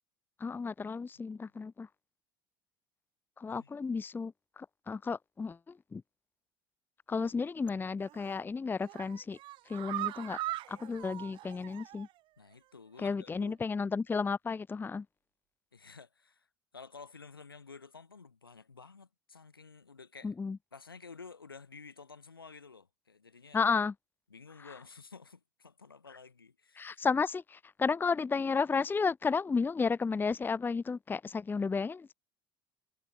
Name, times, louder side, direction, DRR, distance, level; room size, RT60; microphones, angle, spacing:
voice 1, 0.4-1.9 3.4-5.6 5.9-6.0 7.1-9.4 9.7-10.4 10.7-12.1 13.0-15.0 20.2-20.6 23.5-23.9 26.8-32.1, left 5 dB, 15° left, 0.7 m, -32 dB
sound 1, 8.0-8.4 8.8-12.2 12.5-12.6 13.0-13.1, right 16 dB, 45° right, 0.6 m, -40 dB
voice 2, 10.7-11.1 12.4-13.6 15.7-16.5 16.7-20.3 20.7-23.6 24.3-27.1, left 5 dB, 85° left, 4.6 m, -52 dB
figure-of-eight pair, 65°, 12 cm